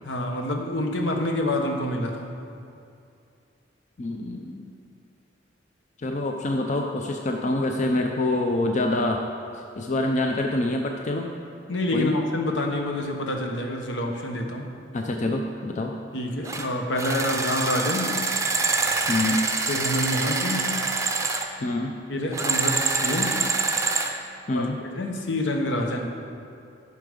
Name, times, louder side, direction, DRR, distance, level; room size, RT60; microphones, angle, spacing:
voice 1, 0.0-2.4 11.7-14.7 16.1-18.2 19.7-20.8 22.1-23.5 24.5-26.1, left 1 dB, 75° left, 2 dB, 1.1 m, -27 dB
voice 2, 4.0-4.7 6.0-9.2 9.5-11.3 11.9-12.2 14.9-15.9 19.1-19.4 21.6-21.9 24.5-24.8, left 2 dB, 40° left, 2 dB, 0.6 m, -26 dB
sound 1, 16.4-16.7 17.0-21.5 22.3-24.1, right 4 dB, 15° right, 0.6 m, -25 dB
13.0 x 5.9 x 5.2 m, 2.5 s
head